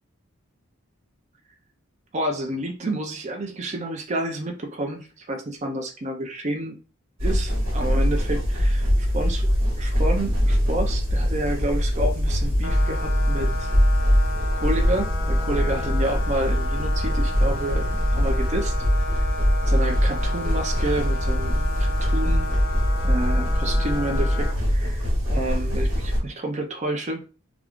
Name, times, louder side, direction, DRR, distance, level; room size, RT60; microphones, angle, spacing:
voice 1, 2.1-6.8 7.2-9.5 9.8-13.7 14.5-18.7 19.7-22.5 23.0-27.2, right 1 dB, 35° right, 3 dB, 0.4 m, -29 dB
sound 1, 7.2-26.2, equal, 85° right, 1.4 m, -22 dB
sound 2, 12.6-24.5, left 3 dB, 50° left, 0.3 m, -34 dB
2.4 x 2.3 x 3.5 m, 0.34 s
head